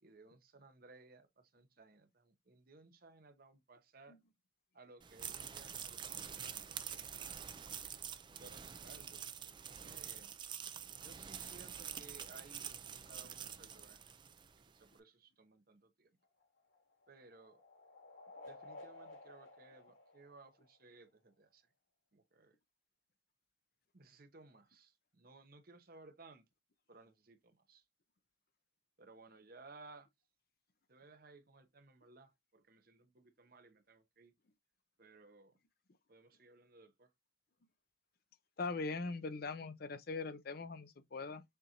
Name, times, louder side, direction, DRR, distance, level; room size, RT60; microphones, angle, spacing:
voice 1, 0.0-4.2 4.7-6.7 8.4-9.2 9.8-10.3 11.0-14.0 14.6-16.1 17.1-17.6 18.4-21.7 22.1-22.6 23.9-26.4 26.9-27.8 29.0-30.1 30.9-34.3 35.0-35.6 36.1-37.1, right 3 dB, 50° right, 0.8 m, -60 dB
sound 1, 5.0-14.5, right 8 dB, 25° right, 0.4 m, -47 dB
sound 2, 16.2-21.0, left 2 dB, 90° left, 3.6 m, -55 dB
voice 2, 38.6-41.4, left 3 dB, 50° left, 0.6 m, -41 dB
6.8 x 2.5 x 2.8 m
head